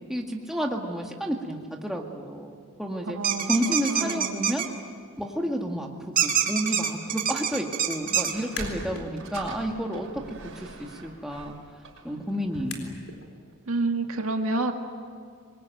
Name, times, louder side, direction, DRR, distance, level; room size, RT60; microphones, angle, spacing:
voice 1, 0.1-2.5 2.8-3.2 3.5-4.7 5.2-10.2 10.6-11.6 12.0-13.0, equal, ahead, 0 dB, 2.0 m, -30 dB
sound 1, 3.2-4.7 6.2-8.3, right 8 dB, 40° right, 1.9 m, -25 dB
voice 2, 3.2-4.5 13.7-14.7, right 2 dB, 80° right, 4 dB, 1.9 m, -29 dB
Sliding door, 8.2-12.8, right 2 dB, 65° right, 6.2 m, -42 dB
sound 2, 8.4-9.1 9.5-13.2, left 4 dB, 75° left, 3.9 m, -44 dB
25.5 x 22.0 x 9.2 m, 2.2 s
head